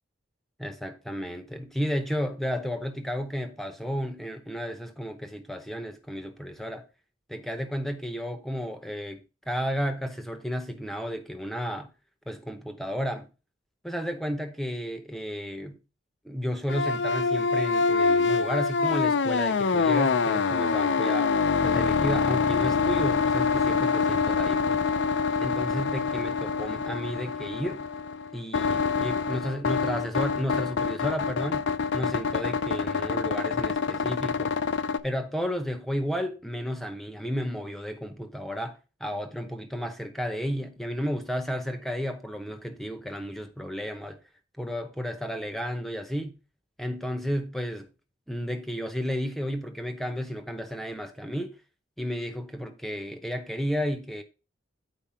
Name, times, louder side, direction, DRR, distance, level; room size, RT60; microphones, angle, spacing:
voice 1, 0.6-6.8 7.3-11.9 12.3-13.3 13.8-15.8 16.2-21.3 21.6-24.8 25.4-27.8 28.3-31.7 31.9-34.5 35.0-44.2 44.6-46.4 46.8-47.9 48.3-51.6 52.0-54.2, equal, ahead, 0.8 m, -32 dB
sound 1, 16.7-35.0, left 5 dB, 65° left, 0.5 m, -26 dB
9.0 x 4.6 x 5.7 m
head